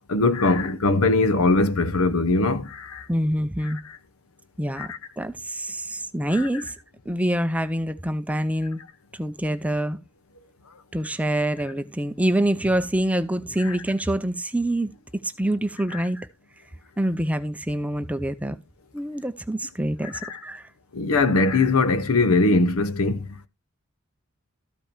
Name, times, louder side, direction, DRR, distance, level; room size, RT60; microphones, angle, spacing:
voice 1, 0.1-3.1 4.8-5.0 6.3-6.5 13.6-13.8 15.9-16.0 20.2-20.4 20.9-23.5, left 3 dB, 80° left, 0.9 m, -21 dB
voice 2, 3.1-3.8 4.6-6.7 7.1-8.8 9.1-10.0 10.9-14.9 15.2-16.3 17.0-18.6 18.9-20.7, right 1 dB, 5° right, 0.5 m, -26 dB
13.5 x 5.2 x 4.5 m
head